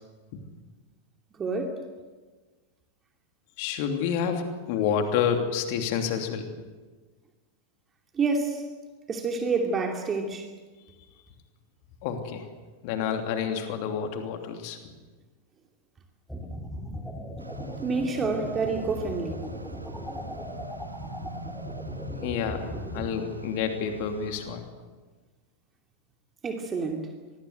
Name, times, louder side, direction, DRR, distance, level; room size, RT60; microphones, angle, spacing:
voice 1, 1.4-1.8 8.1-8.7 9.1-10.5 17.8-19.4 26.4-27.1, right 4 dB, 20° right, 2.7 m, -28 dB
voice 2, 3.6-6.5 12.0-12.5 12.8-14.9 22.2-24.6, left 7 dB, 45° left, 3.0 m, -29 dB
sound 1, 16.3-23.1, equal, ahead, 4.4 m, -38 dB
sound 2, 17.4-24.6, right 2 dB, 80° right, 2.0 m, -44 dB
25.5 x 20.5 x 8.0 m
figure-of-eight pair, 90°, 0 cm